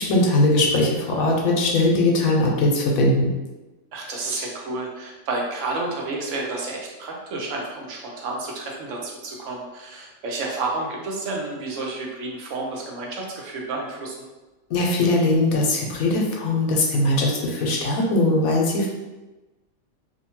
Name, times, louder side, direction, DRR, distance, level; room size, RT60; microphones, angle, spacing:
voice 1, 0.0-3.3 14.7-18.9, left 2 dB, 80° left, -1 dB, 1.0 m, -20 dB
voice 2, 3.9-14.1, right 3 dB, 65° right, -1 dB, 0.9 m, -30 dB
2.7 x 2.2 x 2.9 m, 1.1 s
omnidirectional pair, 1.5 m